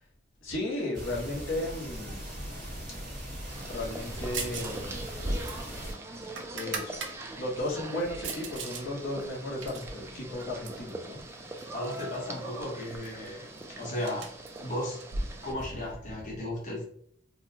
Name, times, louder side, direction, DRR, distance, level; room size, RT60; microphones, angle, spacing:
voice 1, 0.4-2.3 3.6-5.0 6.5-6.9 7.4-11.7 15.5-15.8 16.1-16.3, left 1 dB, 80° left, -4 dB, 1.1 m, -35 dB
sound 1, 0.9-5.9, equal, 40° right, 1.3 m, -38 dB
sound 2, 3.5-15.5, right 2 dB, 15° right, 0.3 m, -43 dB
sound 3, 4.3-4.8 5.1-7.1 7.6-8.8 9.2-10.9 11.6-12.2 12.4-12.5 12.8-15.9, right 4 dB, 65° right, 0.6 m, -39 dB
voice 2, 11.7-13.5 13.8-14.3 14.6-15.0 15.4-16.8, left 1 dB, 40° left, -4 dB, 0.9 m, -35 dB
4.0 x 2.2 x 2.8 m, 0.65 s
head